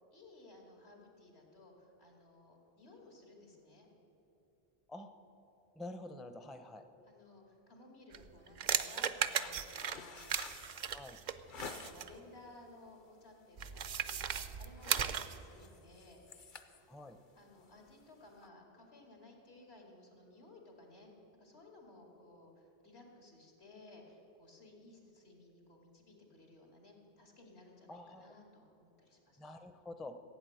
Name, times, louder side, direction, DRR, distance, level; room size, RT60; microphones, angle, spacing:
voice 1, 0.1-3.9 7.1-10.4 11.6-16.8 17.3-21.1 21.4-29.6, left 2 dB, 85° left, 1 dB, 2.7 m, -58 dB
voice 2, 5.8-6.8 10.9-11.2 16.9-17.2 27.9-28.3 29.4-30.1, left 2 dB, ahead, 8 dB, 0.5 m, -47 dB
sound 1, 8.1-12.2 13.6-15.4, right 7 dB, 55° right, 0.6 m, -37 dB
sound 2, 9.2-12.2 12.7-13.0 13.4-13.6 13.9-14.3 14.6-18.5, left 5 dB, 55° left, 0.9 m, -51 dB
16.0 x 8.9 x 7.8 m, 2.9 s
omnidirectional pair, 1.1 m